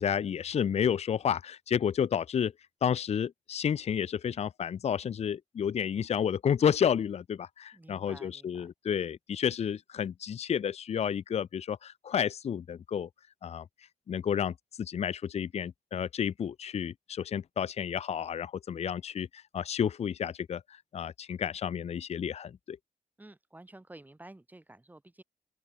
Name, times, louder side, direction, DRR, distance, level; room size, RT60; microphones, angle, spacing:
voice 1, 0.0-2.5 2.8-13.1 13.4-13.7 14.1-22.8, left 8 dB, 50° left, 0.5 m, -31 dB
voice 2, 7.7-8.7 23.2-25.2, right 1 dB, 10° right, 1.8 m, -51 dB
open air
wide cardioid pair, 135°, 14 cm